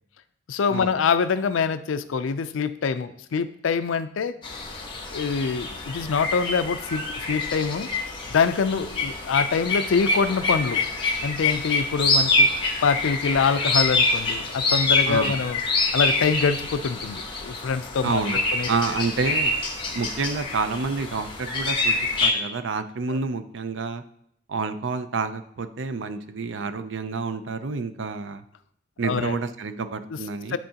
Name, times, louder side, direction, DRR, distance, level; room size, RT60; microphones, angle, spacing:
voice 1, 0.5-4.4 5.1-7.9 8.3-10.8 11.2-12.5 12.8-15.6 15.9-18.2 18.5-18.7 23.1-23.2 29.0-29.4 30.1-30.2 30.5-30.6, left 5 dB, 80° left, 12 dB, 0.4 m, -25 dB
sound 1, 4.4-22.3, left 3 dB, 25° left, 1.0 m, -26 dB
voice 2, 18.0-19.5 19.9-21.9 22.2-24.0 24.5-28.4 29.0-30.6, right 4 dB, 65° right, 10 dB, 0.5 m, -28 dB
10.0 x 3.7 x 2.8 m, 0.73 s
head